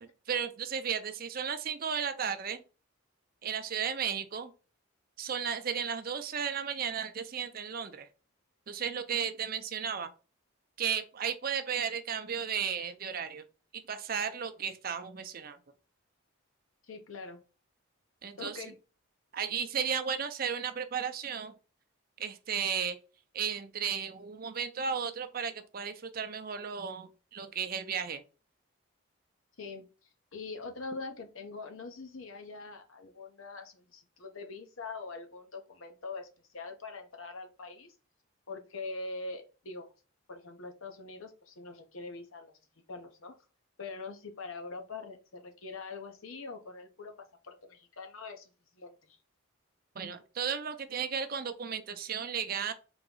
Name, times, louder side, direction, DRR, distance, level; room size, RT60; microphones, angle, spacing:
voice 1, 0.0-2.6 3.4-4.5 5.2-8.1 8.7-10.1 10.8-13.4 13.7-15.6 18.2-18.7 19.3-21.5 22.2-23.0 23.3-28.2 50.0-52.7, right 7 dB, 45° right, 0.5 m, -34 dB
voice 2, 16.9-17.4 18.4-18.8 29.6-29.9 30.3-36.3 36.5-37.9 38.5-39.9 40.3-42.5 42.9-43.3 43.8-49.2, left 3 dB, 75° left, 0.9 m, -43 dB
3.9 x 2.9 x 3.8 m
head